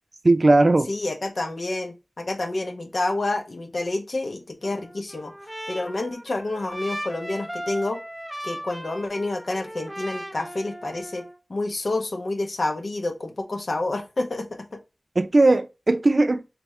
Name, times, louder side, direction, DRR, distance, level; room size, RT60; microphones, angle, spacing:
voice 1, 0.2-0.9 15.2-16.6, right 2 dB, 60° right, 0.5 m, -18 dB
voice 2, 0.9-5.3 5.7-8.0 8.4-11.2 11.5-14.5 14.7-14.8, left 2 dB, 80° left, 0.8 m, -28 dB
Trumpet, 4.6-11.4, equal, 10° right, 0.7 m, -37 dB
3.5 x 3.4 x 3.1 m
wide cardioid pair, 40°, 0 cm